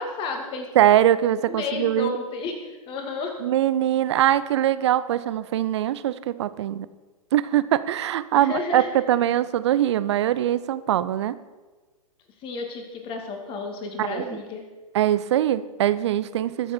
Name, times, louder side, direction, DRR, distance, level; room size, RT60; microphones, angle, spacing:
voice 1, 0.0-0.7 1.4-3.4 8.3-8.9 12.4-14.6, left 4 dB, 30° left, 4 dB, 2.3 m, -32 dB
voice 2, 0.8-2.1 3.4-6.9 7.3-11.4 14.0-14.4 14.9-16.7, right 12 dB, 50° right, 15 dB, 0.7 m, -22 dB
21.0 x 7.4 x 4.5 m, 1.3 s
figure-of-eight pair, 110°, 19 cm